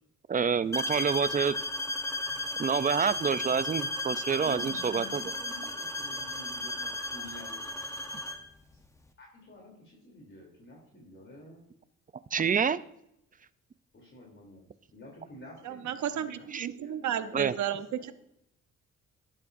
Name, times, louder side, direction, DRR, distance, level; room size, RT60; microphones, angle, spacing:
voice 1, 0.3-1.6 2.6-5.2 12.3-12.8 16.5-16.7 17.3-17.5, right 6 dB, 25° right, 15 dB, 0.5 m, -27 dB
sound 1, 0.7-8.5, left 1 dB, 10° left, 0.9 m, -35 dB
voice 2, 4.4-7.6 9.2-11.6 13.9-14.7 14.9-17.6 17.9-18.1, left 1 dB, 40° left, -2 dB, 3.4 m, -49 dB
voice 3, 15.6-18.1, right 10 dB, 70° right, 10 dB, 0.9 m, -33 dB
12.0 x 12.0 x 2.7 m, 0.78 s
cardioid pair, 90°, 30 cm